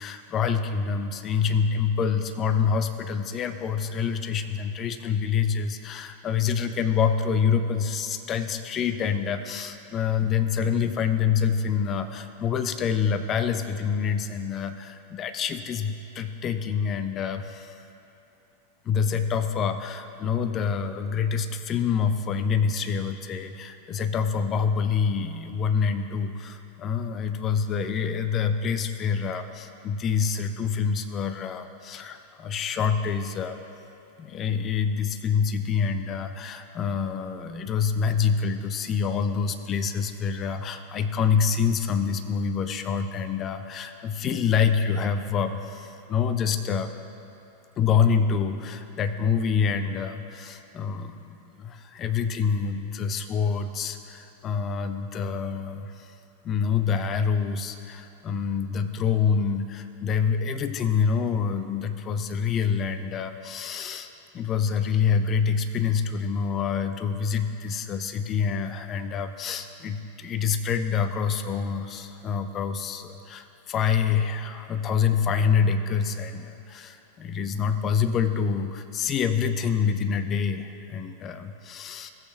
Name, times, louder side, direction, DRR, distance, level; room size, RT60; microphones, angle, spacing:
voice 1, 0.0-17.7 18.9-33.6 34.2-46.9 47.8-56.1 56.4-64.1 64.3-82.1, left 6 dB, 30° left, 9 dB, 0.5 m, -26 dB
15.5 x 8.1 x 2.3 m, 3.0 s
figure-of-eight pair, 90°, 0 cm